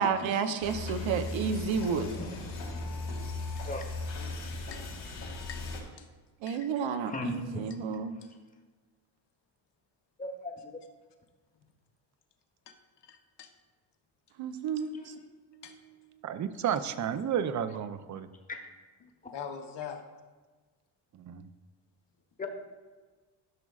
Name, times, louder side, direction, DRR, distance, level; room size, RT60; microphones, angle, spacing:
voice 1, 0.0-2.1 6.4-8.1 14.4-15.1 15.5-15.6, right 6 dB, 70° right, 9 dB, 0.8 m, -31 dB
sound 1, 0.6-5.8, left 2 dB, 75° left, 2.0 m, -37 dB
voice 2, 7.0-8.4 10.2-10.8 14.9-15.1 18.5-18.7 22.4-22.5, left 2 dB, 15° left, 3 dB, 1.0 m, -39 dB
voice 3, 13.0-13.5 15.6-15.7 19.3-20.0, left 7 dB, 60° left, 6 dB, 1.0 m, -42 dB
voice 4, 16.2-18.3 21.1-21.5, right 8 dB, 40° right, 12 dB, 0.5 m, -32 dB
12.5 x 6.0 x 2.4 m, 1.3 s
cardioid pair, 85°, 48 cm